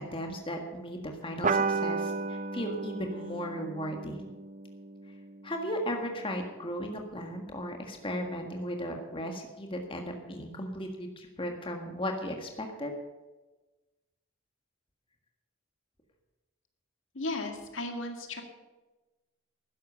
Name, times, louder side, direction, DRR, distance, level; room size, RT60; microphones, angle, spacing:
voice 1, 0.0-4.2 5.4-12.9, equal, 25° left, 3 dB, 1.6 m, -36 dB
sound 1, 1.4-6.3, right 4 dB, 40° right, 0.5 m, -34 dB
voice 2, 17.1-18.4, left 2 dB, 75° left, 5 dB, 2.0 m, -35 dB
12.5 x 10.5 x 6.9 m, 1.2 s
head